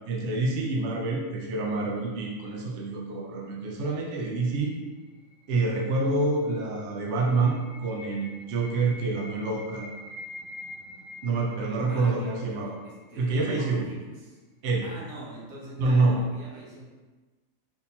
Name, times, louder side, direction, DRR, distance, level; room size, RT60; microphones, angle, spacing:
voice 1, 0.1-4.7 5.5-9.9 11.2-12.8 13.2-13.8 14.6-14.9 15.8-16.2, right 3 dB, 65° right, -2 dB, 0.8 m, -27 dB
sound 1, 4.6-13.5, left 1 dB, 10° right, 1.0 m, -47 dB
voice 2, 11.9-14.4 14.8-16.9, right 1 dB, 85° right, -5 dB, 1.4 m, -44 dB
3.6 x 2.7 x 2.7 m, 1.2 s
omnidirectional pair, 1.4 m